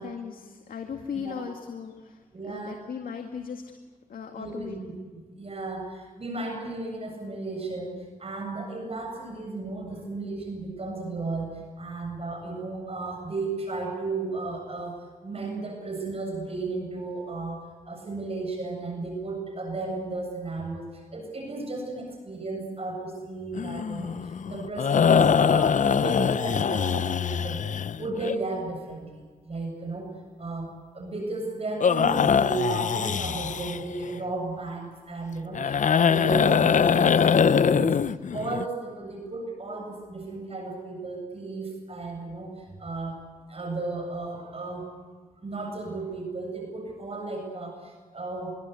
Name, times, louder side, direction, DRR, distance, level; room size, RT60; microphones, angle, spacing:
voice 1, 0.0-3.8 4.1-4.8, left 6 dB, 75° left, 4 dB, 2.1 m, -37 dB
voice 2, 1.1-1.4 2.3-2.8 4.3-30.1 30.4-43.2 43.5-44.9 45.4-48.5, right 3 dB, 45° right, 2 dB, 7.8 m, -34 dB
sound 1, 23.5-28.3 31.8-34.0 35.5-38.6, left 7 dB, 60° left, 0.8 m, -23 dB
25.0 x 22.5 x 8.3 m, 1.5 s
cardioid pair, 60°, 15 cm